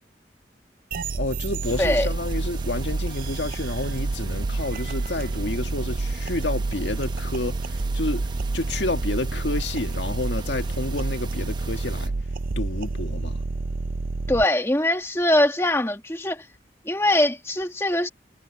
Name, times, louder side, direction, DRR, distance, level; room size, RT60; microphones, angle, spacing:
sound 1, 0.9-14.4, right 3 dB, 50° right, 0.5 m, -29 dB
voice 1, 1.1-12.1 12.6-13.4, left 2 dB, 80° left, 1.9 m, -30 dB
sound 2, 1.6-12.1, right 2 dB, 25° right, 0.9 m, -38 dB
voice 2, 1.8-2.1 14.3-16.5 16.8-18.1, left 1 dB, 15° left, 1.5 m, -22 dB
head